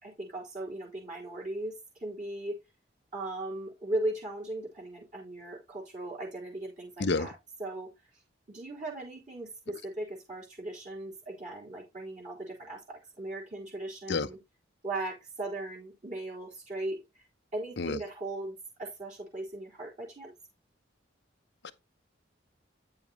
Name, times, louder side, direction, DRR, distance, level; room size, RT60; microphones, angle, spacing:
voice 1, 0.0-2.6 3.1-7.3 7.6-7.9 8.5-14.4 14.8-17.2 17.5-20.3, right 2 dB, 40° right, 3.9 m, -38 dB
voice 2, 7.0-7.3 14.1-14.3 17.8-18.0 21.6-21.7, left 3 dB, 60° left, 0.7 m, -29 dB
9.4 x 7.1 x 3.0 m
head